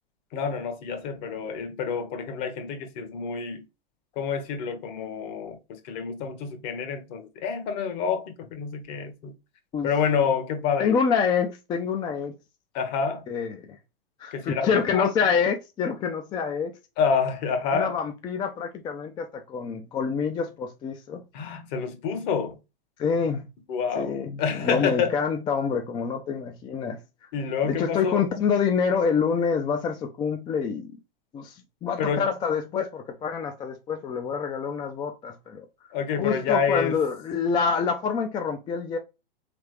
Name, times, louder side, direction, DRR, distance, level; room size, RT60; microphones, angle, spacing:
voice 1, 0.3-3.6 4.2-9.3 9.8-11.0 12.7-13.2 14.3-15.1 17.0-18.0 21.3-22.6 23.7-25.2 27.3-28.2 32.0-32.3 35.9-37.0, left 6 dB, 50° left, 1.2 m, -28 dB
voice 2, 10.8-12.3 13.3-13.7 14.2-16.7 17.7-21.2 23.0-23.5 23.9-27.0 27.7-30.9 31.3-35.6 36.2-39.0, left 6 dB, 15° left, 0.3 m, -26 dB
3.6 x 3.4 x 3.2 m
hypercardioid pair, 115°, 30 cm